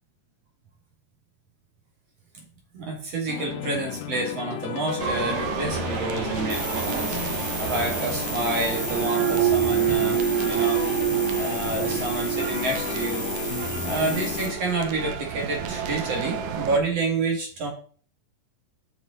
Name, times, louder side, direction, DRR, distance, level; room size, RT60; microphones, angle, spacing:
voice 1, 2.7-10.8 11.3-13.3 13.8-17.7, right 2 dB, 45° right, 0 dB, 2.9 m, -29 dB
sound 1, 3.3-14.5, left 10 dB, 90° left, 1.8 m, -34 dB
sound 2, 5.0-16.8, right 9 dB, 85° right, 1.6 m, -28 dB
sound 3, 6.5-14.5, equal, 10° right, 0.9 m, -34 dB
8.2 x 6.6 x 4.0 m, 0.43 s
omnidirectional pair, 4.4 m